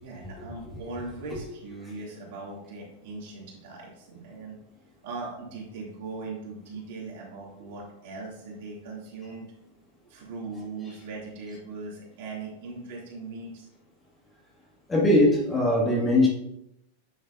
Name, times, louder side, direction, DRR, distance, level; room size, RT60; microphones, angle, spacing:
voice 1, 0.0-4.6 5.0-9.4 10.1-13.7, right 3 dB, 50° right, 3.0 m, -39 dB
voice 2, 14.9-16.3, left 1 dB, 15° left, 2.3 m, -20 dB
9.3 x 6.7 x 2.8 m
figure-of-eight pair, 90°, 0 cm